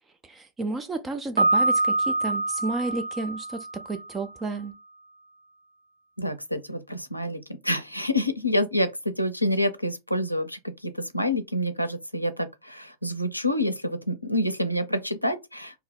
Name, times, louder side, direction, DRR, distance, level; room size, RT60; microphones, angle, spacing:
voice 1, 0.2-4.7, right 3 dB, 15° right, 0.4 m, -32 dB
Piano, 1.4-4.3, right 2 dB, 80° right, 0.5 m, -25 dB
voice 2, 6.2-15.8, left 1 dB, 90° left, 0.4 m, -27 dB
2.7 x 2.0 x 3.9 m
figure-of-eight pair, 90°, 0 cm